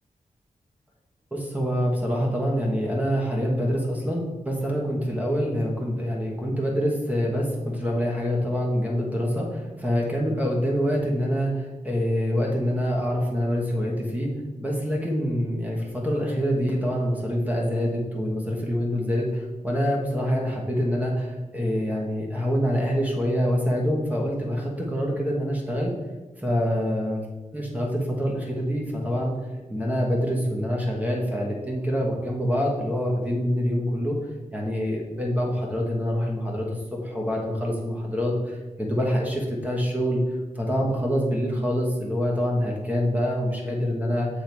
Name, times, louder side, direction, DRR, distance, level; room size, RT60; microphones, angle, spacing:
voice 1, 1.3-14.3 14.6-25.9 26.4-27.2 27.5-29.3 29.7-34.2 34.5-40.2 40.5-44.3, equal, 10° right, -2 dB, 1.2 m, -26 dB
7.1 x 3.7 x 4.6 m, 1.2 s
wide cardioid pair, 140°, 13 cm